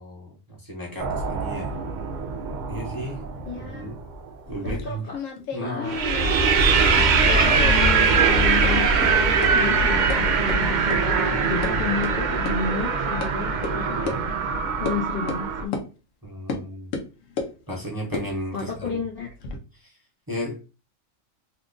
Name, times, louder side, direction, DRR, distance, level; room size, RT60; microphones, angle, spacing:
voice 1, 0.0-1.8 2.7-3.2 3.5-4.0 4.5-5.0 5.5-5.8 11.3-11.9 14.0-14.2 16.2-16.9 17.7-18.9 19.7-20.0 20.3-20.6, equal, 20° right, -3 dB, 0.7 m, -34 dB
sound 1, 1.0-3.9 5.9-15.6, right 4 dB, 90° right, 0.4 m, -22 dB
voice 2, 3.5-3.9 4.6-5.2 5.6-6.0 7.2-14.1 14.4-15.8 18.5-19.3, left 5 dB, 55° left, -1 dB, 0.6 m, -32 dB
sound 2, 4.5-7.3 7.5-8.3 8.6-8.7 9.0-9.1 9.4-9.5 10.1-10.2 10.5-10.6 10.9-11.0 11.3-11.7 12.0-12.1 12.5-12.6 13.2-13.3 13.6-13.7 14.1-14.2 14.9-15.0 15.3-15.4 15.7-15.9 16.5-16.6 16.9-17.5 18.0-19.6, left 4 dB, 75° left, 1.0 m, -33 dB
2.9 x 2.3 x 3.7 m, 0.33 s
omnidirectional pair, 1.4 m